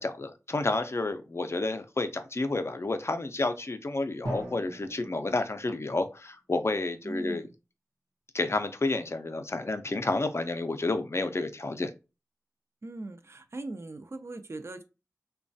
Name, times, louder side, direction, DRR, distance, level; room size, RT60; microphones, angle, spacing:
voice 1, 0.0-7.4 8.3-11.9, left 2 dB, 45° left, 0.4 m, -30 dB
Drum, 4.2-6.2, right 1 dB, 85° right, 0.7 m, -40 dB
voice 2, 7.0-7.5 12.8-14.8, right 2 dB, 45° right, 0.4 m, -40 dB
3.0 x 2.2 x 2.6 m
wide cardioid pair, 65°, 6 cm